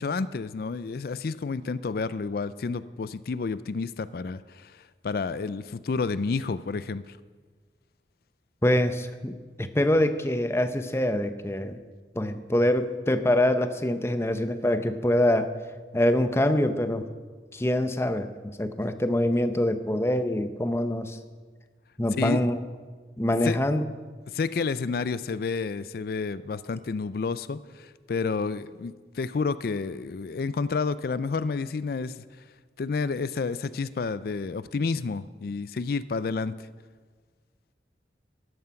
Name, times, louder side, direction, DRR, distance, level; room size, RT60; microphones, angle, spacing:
voice 1, 0.0-7.2 22.1-22.4 23.4-23.6 24.3-32.2 32.8-36.5, left 4 dB, 55° left, 16 dB, 0.4 m, -30 dB
voice 2, 8.6-11.8 12.1-15.5 15.9-17.1 17.5-21.2 22.0-22.6 23.2-23.8, left 1 dB, 15° left, 10 dB, 0.7 m, -25 dB
13.5 x 11.5 x 5.8 m, 1.5 s
head